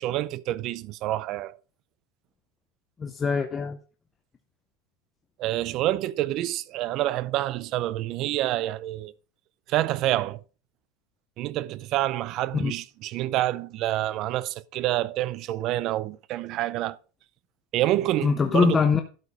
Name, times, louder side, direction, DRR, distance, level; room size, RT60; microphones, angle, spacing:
voice 1, 0.0-1.5 5.4-9.1 9.7-10.4 11.4-17.0 17.7-18.9, right 14 dB, 35° right, 0.5 m, -27 dB
voice 2, 3.0-3.8 12.5-12.7 18.2-19.0, left 5 dB, 15° left, 0.6 m, -23 dB
12.0 x 4.9 x 5.2 m
supercardioid pair, 170°, 0 cm